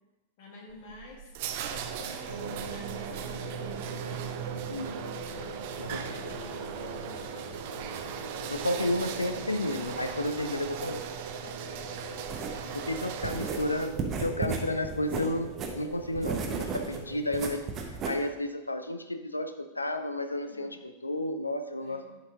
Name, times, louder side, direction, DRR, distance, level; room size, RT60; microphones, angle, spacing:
voice 1, 0.4-3.9 5.8-7.5 11.4-11.9 12.3-13.7 14.0-14.7 16.8-17.1 20.4-20.8 21.8-22.1, left 2 dB, 50° left, -1 dB, 1.9 m, -50 dB
sound 1, 0.7-14.2, right 8 dB, 50° right, 0.6 m, -39 dB
sound 2, 2.3-17.2, right 3 dB, 75° right, 1.2 m, -41 dB
voice 2, 4.7-5.0 5.8-6.2 8.5-11.2 12.7-17.6 18.0-22.1, left 1 dB, 80° left, 9 dB, 0.5 m, -32 dB
sound 3, 12.3-18.3, right 5 dB, 30° right, 0.9 m, -35 dB
10.5 x 4.6 x 3.8 m, 1.1 s
figure-of-eight pair, 90°, 0 cm